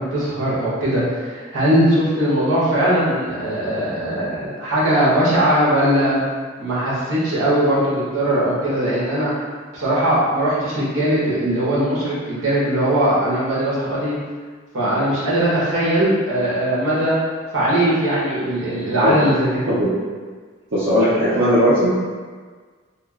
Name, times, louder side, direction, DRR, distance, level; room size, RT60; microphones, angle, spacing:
voice 1, 0.0-6.2 6.6-9.3 9.7-14.1 14.7-17.2 17.5-19.6, right 1 dB, 90° right, -8 dB, 1.1 m, -20 dB
voice 2, 20.7-21.9, equal, 70° right, -12 dB, 0.7 m, -17 dB
2.9 x 2.4 x 2.4 m, 1.5 s
head